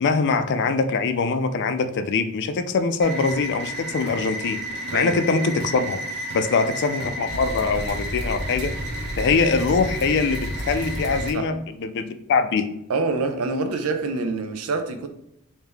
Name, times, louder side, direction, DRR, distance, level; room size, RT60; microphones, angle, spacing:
voice 1, 0.0-4.6 4.9-6.0 6.3-8.7 9.2-12.7, left 4 dB, 55° left, 0.4 m, -23 dB
sound 1, 3.0-11.3, equal, 50° right, 0.8 m, -31 dB
voice 2, 4.9-5.3 11.3-11.5 12.9-15.1, right 3 dB, 90° right, 0.5 m, -26 dB
3.3 x 2.7 x 3.5 m
head